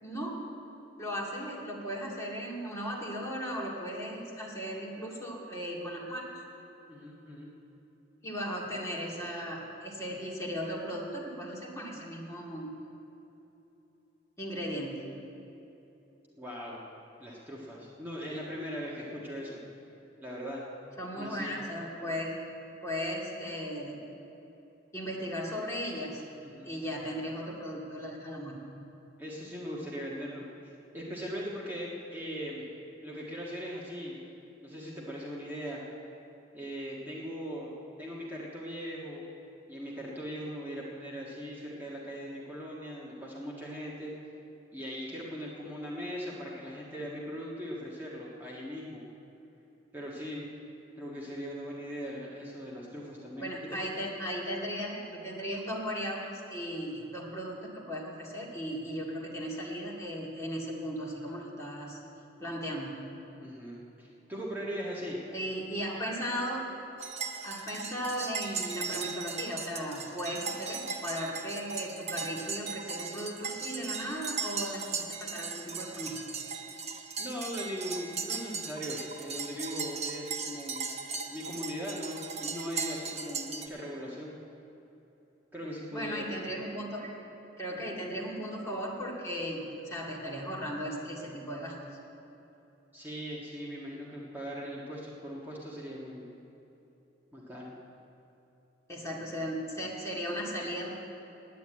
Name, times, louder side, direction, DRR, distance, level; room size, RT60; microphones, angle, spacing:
voice 1, 0.0-0.4 1.0-6.3 8.2-12.8 14.4-15.1 21.0-22.4 22.8-24.0 24.9-26.2 26.7-28.7 53.4-62.0 62.4-63.1 65.3-66.7 67.4-76.2 85.9-87.1 87.6-91.8 98.9-100.9, equal, 15° left, -4 dB, 2.1 m, -36 dB
voice 2, 6.9-7.5 16.4-16.8 17.2-19.6 20.2-20.6 21.2-21.5 26.4-26.7 29.2-30.4 30.9-32.7 33.0-34.3 34.6-35.8 36.5-37.7 38.0-39.2 39.7-44.1 44.7-49.0 49.9-50.5 51.0-53.8 63.4-65.2 77.2-80.8 81.3-84.3 85.5-86.3 92.9-96.3 97.3-97.7, equal, 10° right, -5 dB, 1.5 m, -39 dB
sound 1, 67.0-83.7, right 5 dB, 35° right, 0.9 m, -38 dB
9.4 x 9.3 x 9.4 m, 3.0 s
head